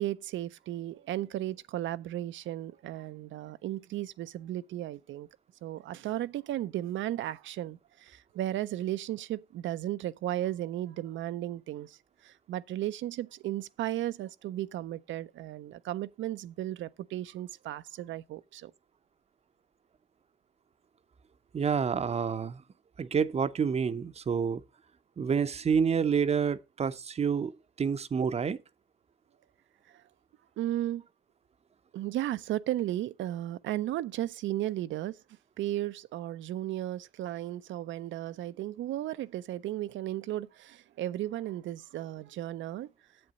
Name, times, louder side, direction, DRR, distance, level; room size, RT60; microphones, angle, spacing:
voice 1, 0.0-5.3 5.6-12.0 12.2-18.7 30.6-31.0 31.9-35.2 35.6-42.9, right 13 dB, 75° right, 0.5 m, -35 dB
voice 2, 21.5-22.6 23.0-24.6 25.2-28.6, right 6 dB, 30° right, 0.6 m, -28 dB
7.7 x 7.7 x 3.9 m
cardioid pair, 90°, 20 cm